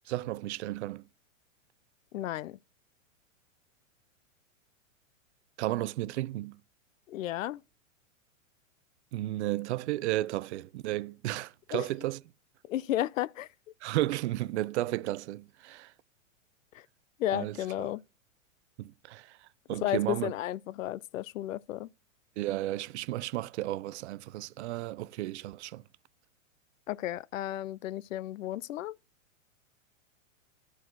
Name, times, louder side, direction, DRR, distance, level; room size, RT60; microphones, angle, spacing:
voice 1, 0.1-1.0 5.6-6.6 9.1-12.2 13.8-15.9 17.3-17.9 18.8-19.4 19.7-20.3 22.4-25.8, right 16 dB, 60° right, 0.6 m, -33 dB
voice 2, 2.1-2.6 7.1-7.6 11.7-11.8 12.7-13.5 16.7-16.8 17.2-18.0 19.8-21.9 26.9-29.0, left 13 dB, 75° left, 0.6 m, -33 dB
11.0 x 4.8 x 5.9 m
hypercardioid pair, 125°, 39 cm